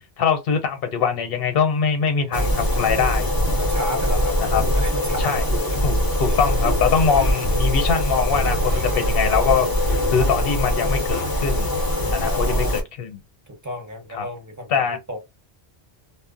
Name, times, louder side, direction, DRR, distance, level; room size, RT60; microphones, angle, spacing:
voice 1, 0.2-3.3 4.5-4.6 5.2-5.4 5.8-11.7 12.1-13.2 14.1-14.3 14.7-15.0, left 6 dB, 65° left, 0.9 m, -23 dB
sound 1, 2.3-12.8, left 1 dB, 30° left, 0.5 m, -22 dB
voice 2, 3.6-4.4 4.6-5.8 6.3-6.7 12.0-12.8 13.5-14.7 15.1-15.2, equal, 20° right, 0.7 m, -33 dB
sound 2, 8.4-12.0 12.3-12.4, right 4 dB, 65° right, 0.7 m, -36 dB
2.0 x 2.0 x 3.7 m
omnidirectional pair, 1.1 m